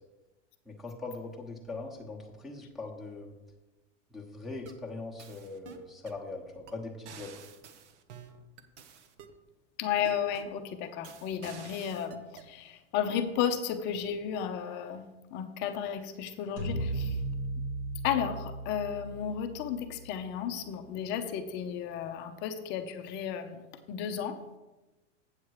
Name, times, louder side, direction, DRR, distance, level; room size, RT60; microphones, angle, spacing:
voice 1, 0.7-3.3 4.1-7.3, left 3 dB, ahead, -4 dB, 1.1 m, -41 dB
sound 1, 4.4-4.9 5.2-6.2 6.7-6.8 7.1-9.4 10.0-10.6 11.0-12.5, right 7 dB, 70° right, 1.1 m, -50 dB
voice 2, 9.8-15.0 15.3-17.2 18.0-23.6 23.9-24.4, left 8 dB, 30° left, 7 dB, 0.7 m, -33 dB
sound 2, 16.6-20.9, right 2 dB, 85° right, 2.6 m, -37 dB
8.2 x 7.1 x 4.8 m, 1.1 s
supercardioid pair, 150°, 36 cm